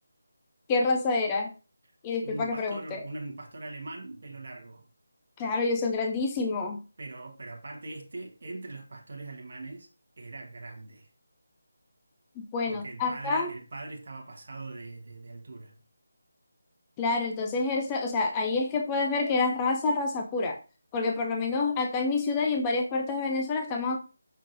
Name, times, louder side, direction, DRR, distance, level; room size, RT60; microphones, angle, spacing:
voice 1, 0.7-1.5 2.0-3.0 5.4-6.8 12.4-13.5 17.0-20.6 20.9-24.0, left 3 dB, 15° left, 0.4 m, -28 dB
voice 2, 2.2-4.8 7.0-9.9 10.2-11.1 12.7-15.8, right 2 dB, 50° right, 0.9 m, -41 dB
5.6 x 3.6 x 2.5 m
figure-of-eight pair, 160°, 0 cm